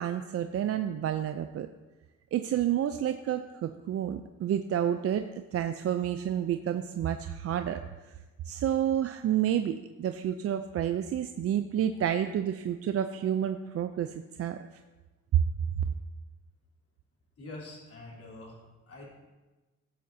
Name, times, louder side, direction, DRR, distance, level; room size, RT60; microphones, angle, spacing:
voice 1, 0.0-1.7 2.3-7.8 8.5-14.6 15.7-15.9, right 10 dB, 50° right, 8 dB, 0.5 m, -30 dB
voice 2, 17.4-19.1, left 2 dB, 50° left, -3 dB, 3.4 m, -45 dB
15.0 x 7.6 x 2.7 m, 1.2 s
cardioid pair, 90°, 30 cm